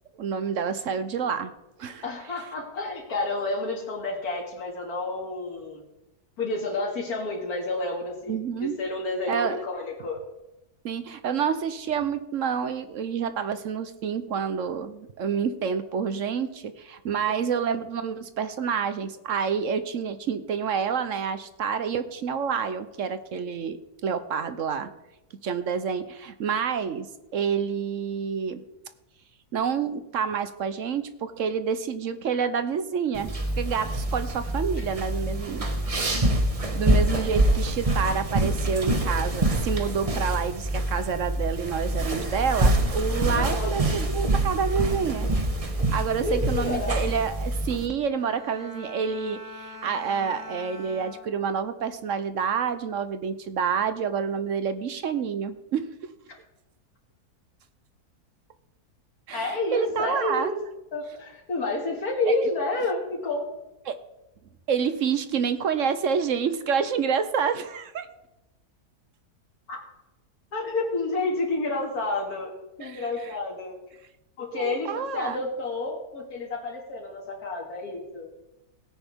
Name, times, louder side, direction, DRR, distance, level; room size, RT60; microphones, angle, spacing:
voice 1, 0.1-1.5 1.8-2.0 8.3-8.8 9.3-9.6 10.8-24.9 25.4-28.6 29.5-33.3 33.6-35.7 36.7-45.3 45.9-55.9 59.3-59.4 59.7-60.5 62.3-62.4 63.9-64.0 64.7-68.1 72.8-73.0 74.5-75.4, right 6 dB, 60° right, 11 dB, 1.0 m, -28 dB
voice 2, 2.0-5.8 6.4-10.2 43.3-43.9 46.2-47.0 59.3-60.6 60.9-63.5 69.7-69.8 70.5-72.5 72.8-73.8 74.4-78.3, left 2 dB, 70° left, 0 dB, 2.7 m, -30 dB
sound 1, 33.1-47.9, right 1 dB, 25° right, 1.0 m, -26 dB
Bowed string instrument, 48.1-51.7 52.2-52.6, left 2 dB, 90° right, 6.2 m, -44 dB
17.0 x 9.9 x 3.6 m, 0.94 s
omnidirectional pair, 1.7 m